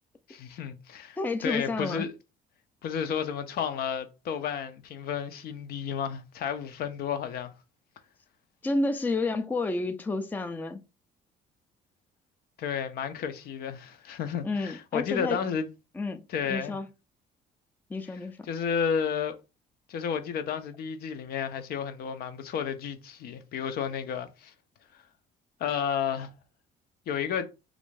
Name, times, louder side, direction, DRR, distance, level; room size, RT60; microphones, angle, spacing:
voice 1, 0.3-2.1 2.8-7.5 12.6-15.7 16.3-16.8 18.5-19.4 19.9-24.5 25.6-26.3 27.1-27.5, left 7 dB, 65° left, 0.6 m, -32 dB
voice 2, 1.2-2.1 8.6-10.8 14.4-15.4 16.0-16.2 16.5-16.9 17.9-18.5, left 3 dB, 10° left, 0.4 m, -30 dB
3.2 x 2.5 x 3.2 m
cardioid pair, 110°, 17 cm